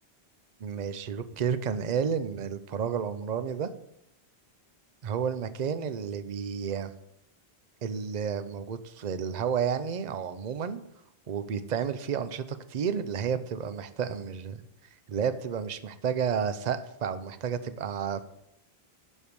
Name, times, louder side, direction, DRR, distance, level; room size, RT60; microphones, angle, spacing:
voice 1, 0.6-3.7 5.0-6.9 7.8-10.8 11.3-14.6 15.1-18.2, right 7 dB, 45° right, 12 dB, 0.7 m, -31 dB
9.8 x 6.5 x 5.3 m, 0.77 s
omnidirectional pair, 1.1 m